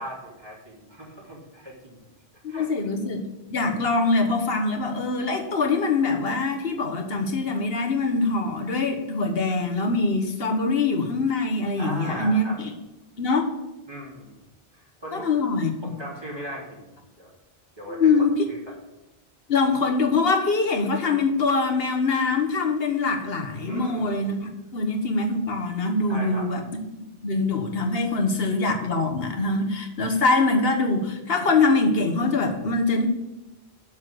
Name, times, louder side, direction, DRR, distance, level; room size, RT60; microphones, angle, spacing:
voice 1, 0.0-2.1 2.5-2.7 11.8-12.6 13.9-14.4 14.7-15.5 15.8-17.3 17.8-18.7 23.6-24.2 26.1-26.5, right 1 dB, 25° right, -5 dB, 3.0 m, -38 dB
voice 2, 2.4-3.2 3.5-12.7 13.2-13.5 15.1-15.7 17.9-18.3 19.5-26.6 26.9-33.1, left 3 dB, 65° left, 3 dB, 1.5 m, -23 dB
7.3 x 6.1 x 7.8 m, 0.99 s
omnidirectional pair, 1.1 m